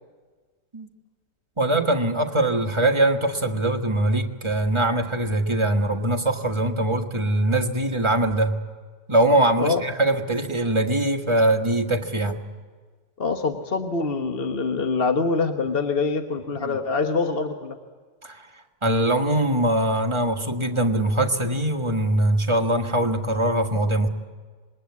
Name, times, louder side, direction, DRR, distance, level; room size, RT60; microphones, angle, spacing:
voice 1, 1.6-8.6 9.1-12.4 16.6-16.8 18.2-18.5 18.8-24.1, right 1 dB, 20° right, 3 dB, 1.3 m, -22 dB
voice 2, 13.2-17.8, left 4 dB, 35° left, 5 dB, 1.3 m, -25 dB
26.0 x 21.5 x 9.5 m, 1.5 s
omnidirectional pair, 2.0 m